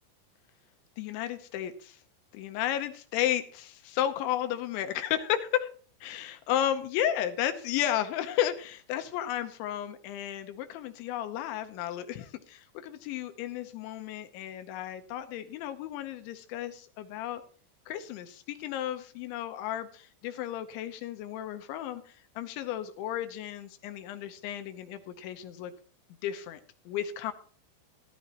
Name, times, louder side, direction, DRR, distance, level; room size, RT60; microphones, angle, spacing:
voice 1, 1.0-2.0 2.3-5.7 6.0-17.4 17.9-25.7 26.2-26.6 26.9-27.3, left 11 dB, 80° left, 8 dB, 3.1 m, -33 dB
14.5 x 14.0 x 2.9 m, 0.42 s
omnidirectional pair, 5.5 m